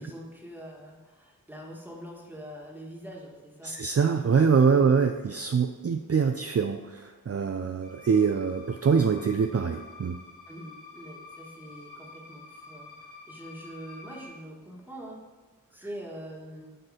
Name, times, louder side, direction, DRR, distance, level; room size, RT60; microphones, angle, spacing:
voice 1, 0.0-3.8 4.7-4.9 10.5-15.2 15.7-16.7, equal, 5° right, -2 dB, 1.5 m, -44 dB
voice 2, 3.6-10.2, right 6 dB, 45° right, 6 dB, 0.4 m, -24 dB
sound 1, 7.8-14.3, left 3 dB, 40° left, 1.9 m, -48 dB
6.2 x 4.6 x 4.9 m, 1.3 s
wide cardioid pair, 45°, 34 cm